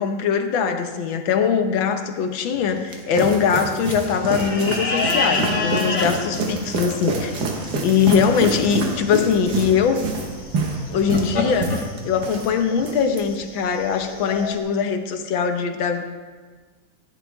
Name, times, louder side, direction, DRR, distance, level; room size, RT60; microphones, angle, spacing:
voice 1, 0.0-7.4 7.8-10.1 10.9-16.1, left 6 dB, 80° left, 6 dB, 1.7 m, -21 dB
sound 1, 2.5-12.5 12.8-13.2, right 3 dB, 60° right, 1.7 m, -27 dB
sound 2, 4.3-14.6, left 3 dB, 40° left, 1.4 m, -29 dB
14.5 x 10.5 x 3.5 m, 1.4 s
omnidirectional pair, 2.1 m